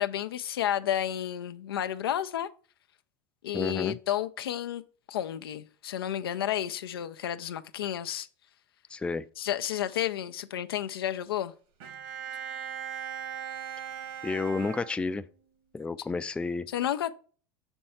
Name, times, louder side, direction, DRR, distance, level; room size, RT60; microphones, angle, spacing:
voice 1, 0.0-2.5 3.4-4.8 5.1-8.3 9.4-11.5 16.7-17.1, left 11 dB, 85° left, 0.4 m, -31 dB
voice 2, 3.5-4.0 8.9-9.2 14.2-15.3 15.7-16.7, left 4 dB, 10° left, 0.3 m, -31 dB
Bowed string instrument, 11.8-15.5, right 8 dB, 65° right, 1.5 m, -39 dB
5.4 x 4.4 x 4.2 m
hypercardioid pair, 90°, 12 cm